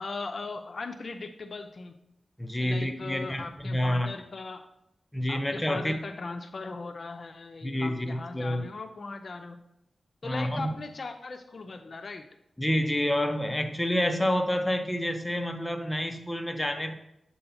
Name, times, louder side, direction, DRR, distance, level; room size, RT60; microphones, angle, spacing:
voice 1, 0.0-1.9 2.6-4.7 5.3-9.6 10.2-12.3, left 3 dB, 55° left, 7 dB, 0.5 m, -39 dB
voice 2, 2.4-4.1 5.1-6.0 7.6-8.6 10.2-10.7 12.6-16.9, equal, 10° left, 5 dB, 0.6 m, -28 dB
7.6 x 2.8 x 5.6 m, 0.83 s
cardioid pair, 70°, 0 cm